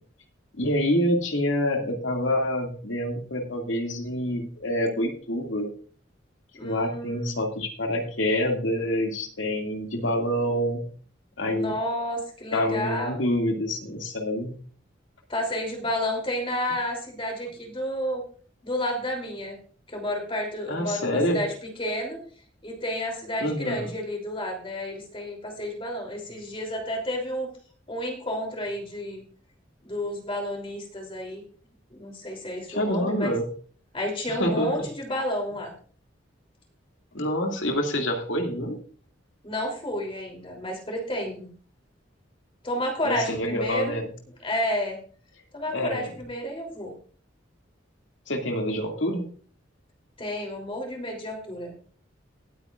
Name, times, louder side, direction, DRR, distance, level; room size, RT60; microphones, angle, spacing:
voice 1, 0.6-5.7 6.6-10.9 11.4-11.7 12.5-14.5 20.7-21.4 23.4-23.9 32.7-33.4 34.3-34.7 37.1-38.8 43.0-44.1 45.7-46.1 48.3-49.2, equal, 80° left, 3 dB, 2.3 m, -27 dB
voice 2, 6.6-7.4 11.5-13.2 15.3-18.2 18.6-19.6 19.9-21.5 21.8-22.2 22.6-27.5 27.9-29.2 29.8-31.4 31.9-33.3 33.9-35.7 39.4-41.5 42.6-44.0 44.4-45.0 45.5-46.9 50.2-51.7, left 1 dB, 30° left, 1 dB, 3.2 m, -31 dB
19.5 x 8.9 x 2.5 m, 0.43 s
head